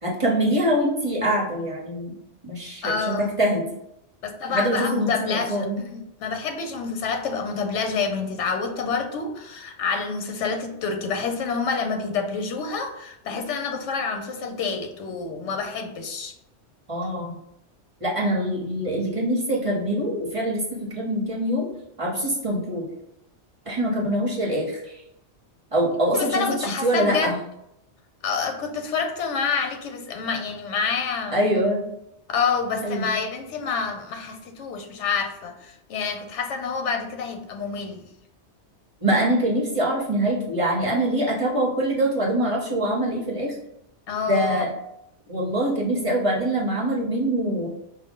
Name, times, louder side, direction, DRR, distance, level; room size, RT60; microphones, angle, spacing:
voice 1, 0.0-2.1 2.4-3.7 4.5-5.8 16.9-17.3 18.0-21.7 22.0-22.9 23.7-25.0 25.7-27.4 31.3-31.8 32.8-33.1 39.0-43.6 44.3-44.7 45.3-47.7, right 1 dB, 30° right, -2 dB, 0.8 m, -24 dB
voice 2, 2.8-3.4 4.2-16.3 26.1-27.3 28.2-31.4 32.3-38.0 44.1-44.7, left 5 dB, 85° left, 5 dB, 1.0 m, -28 dB
4.8 x 2.3 x 3.6 m, 0.80 s
omnidirectional pair, 1.2 m